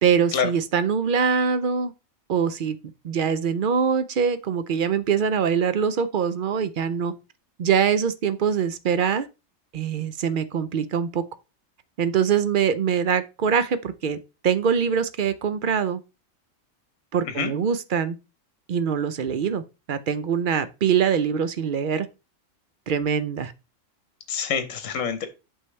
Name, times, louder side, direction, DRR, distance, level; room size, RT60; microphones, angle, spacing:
voice 1, 0.0-1.9 2.3-2.8 3.0-7.1 7.6-9.3 9.7-11.2 12.0-16.0 17.1-18.2 18.7-19.6 19.9-22.1 22.9-23.5, right 7 dB, 55° right, 0.6 m, -23 dB
voice 2, 24.3-25.3, left 6 dB, 75° left, 1.3 m, -26 dB
8.4 x 5.4 x 3.2 m
omnidirectional pair, 1.4 m